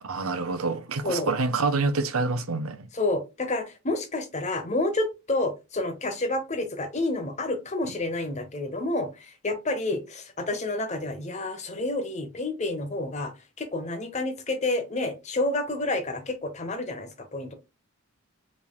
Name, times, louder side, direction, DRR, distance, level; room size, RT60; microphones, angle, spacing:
voice 1, 0.0-2.9, right 3 dB, 75° right, 0.7 m, -27 dB
voice 2, 2.9-13.3 13.6-17.5, left 2 dB, 30° left, 0.9 m, -29 dB
5.2 x 3.5 x 2.3 m
head